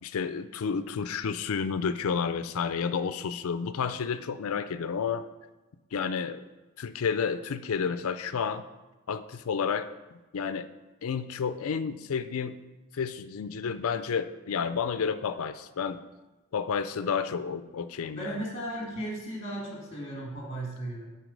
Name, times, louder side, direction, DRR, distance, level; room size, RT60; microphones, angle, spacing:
voice 1, 0.0-5.3 5.9-6.4 6.8-8.6 9.1-10.7 11.0-12.6 12.9-16.0 16.5-18.4, left 6 dB, 70° left, 12 dB, 0.4 m, -31 dB
voice 2, 18.1-21.1, right 1 dB, 25° left, -2 dB, 1.9 m, -36 dB
7.8 x 4.5 x 5.2 m, 1.1 s
head